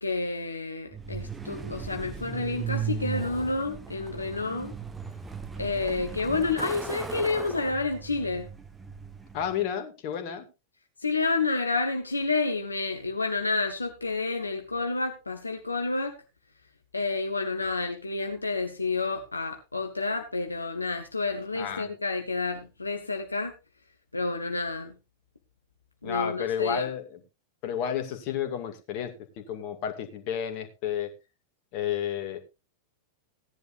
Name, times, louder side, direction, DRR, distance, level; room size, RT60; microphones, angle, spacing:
voice 1, 0.0-4.7 5.6-8.5 11.0-16.2 16.9-23.5 24.1-24.9 26.0-26.9, left 3 dB, 80° left, 4 dB, 1.2 m, -29 dB
Truck, 0.9-9.6, right 6 dB, 10° right, 1.2 m, -37 dB
voice 2, 9.3-10.4 21.6-21.9 26.0-27.2 27.6-31.1 31.7-32.4, left 9 dB, 45° left, 6 dB, 2.2 m, -31 dB
16.5 x 10.5 x 2.6 m, 0.27 s
figure-of-eight pair, 90°, 0 cm